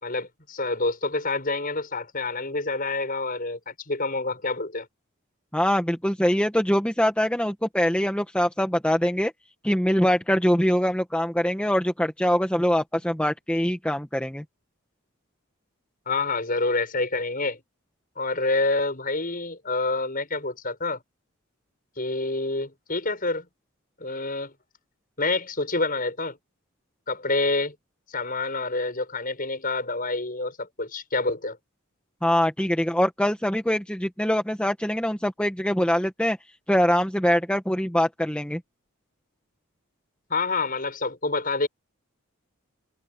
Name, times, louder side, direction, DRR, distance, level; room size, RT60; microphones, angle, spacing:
voice 1, 0.0-4.9 16.0-17.6 18.2-21.0 22.0-23.5 24.0-24.5 25.2-26.4 27.1-27.7 28.1-31.6 40.3-41.7, left 3 dB, 40° left, 6.8 m, -27 dB
voice 2, 5.5-9.3 9.6-14.4 32.2-36.4 36.7-38.6, equal, 5° left, 1.4 m, -23 dB
head